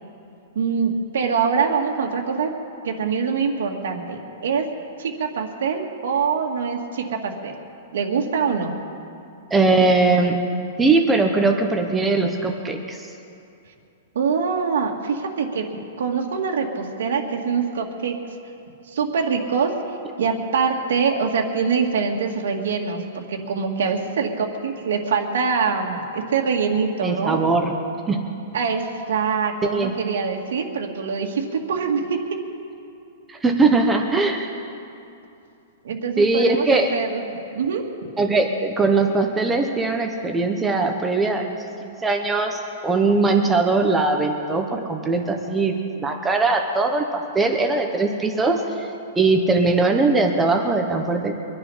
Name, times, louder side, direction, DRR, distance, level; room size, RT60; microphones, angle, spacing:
voice 1, 0.6-2.5 2.8-4.6 5.0-7.5 7.9-8.7 14.2-15.7 16.0-18.2 18.9-19.7 20.2-27.4 28.5-32.2 35.8-37.2 37.5-37.8, right 5 dB, 75° right, 2 dB, 2.0 m, -24 dB
voice 2, 9.5-10.4 10.8-13.0 27.0-27.8 28.1-28.2 29.7-29.9 33.3-34.5 36.2-36.9 38.2-48.9 49.2-51.3, right 3 dB, 10° right, 3 dB, 0.8 m, -20 dB
24.0 x 9.9 x 5.6 m, 2.7 s
supercardioid pair, 175°, 0 cm